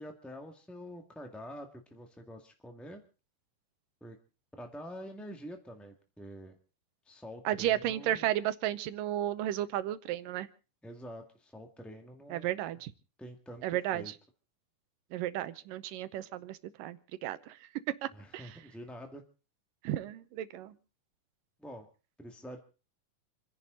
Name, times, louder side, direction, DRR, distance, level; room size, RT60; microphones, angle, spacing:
voice 1, 0.0-3.0 4.0-4.2 4.6-6.6 7.0-8.3 10.8-12.6 13.2-13.6 13.9-14.1 18.1-19.2 21.6-21.9 22.2-22.6, equal, ahead, 4 dB, 0.5 m, -46 dB
voice 2, 7.5-10.5 12.3-12.9 13.6-14.0 15.1-17.6 18.0-18.6 19.8-20.7, right 13 dB, 75° right, 14 dB, 2.4 m, -33 dB
28.5 x 11.0 x 3.9 m, 0.35 s
omnidirectional pair, 4.2 m